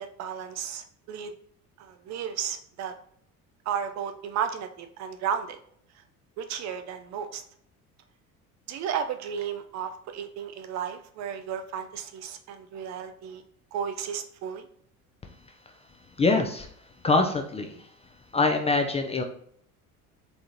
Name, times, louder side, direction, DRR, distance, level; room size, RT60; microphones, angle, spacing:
voice 1, 0.0-1.3 1.8-2.9 3.7-5.6 6.4-7.4 8.7-13.4 13.7-14.6, right 8 dB, 40° right, 8 dB, 0.4 m, -33 dB
voice 2, 16.2-16.7 17.0-17.9 18.3-19.2, left 3 dB, 15° left, 4 dB, 0.4 m, -24 dB
4.0 x 3.6 x 3.0 m, 0.64 s
figure-of-eight pair, 60°, 45 cm